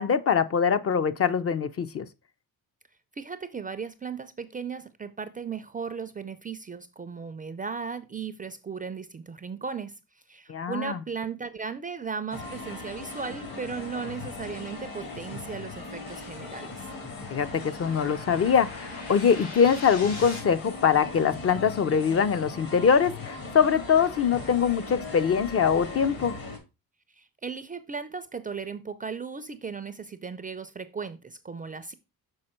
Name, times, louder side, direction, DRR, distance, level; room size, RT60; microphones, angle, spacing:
voice 1, 0.0-2.1 10.5-11.0 17.3-26.4, left 7 dB, 40° left, 0.4 m, -23 dB
voice 2, 3.2-9.9 10.3-16.9 27.2-31.9, right 5 dB, 25° right, 0.3 m, -36 dB
sound 1, 12.3-26.6, left 3 dB, 65° left, 2.1 m, -39 dB
sound 2, 13.9-20.4, left 3 dB, 85° left, 3.8 m, -45 dB
6.4 x 4.4 x 4.3 m
cardioid pair, 140°, 38 cm